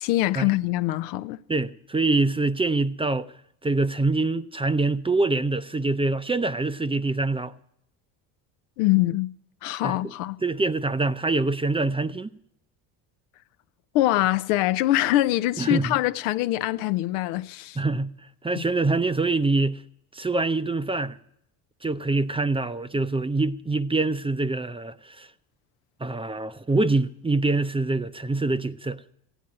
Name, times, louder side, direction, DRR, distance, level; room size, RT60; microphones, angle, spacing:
voice 1, 0.0-1.4 8.8-9.3 9.6-10.4 13.9-17.8 18.5-18.6, left 16 dB, 80° left, 0.7 m, -23 dB
voice 2, 1.5-3.3 3.6-7.5 9.8-10.1 10.4-12.3 15.6-16.0 17.8-18.1 18.4-19.8 20.1-21.2 21.8-25.3 26.0-29.0, right 3 dB, 10° right, 0.6 m, -25 dB
15.5 x 9.2 x 7.5 m
hypercardioid pair, 75°, 45 cm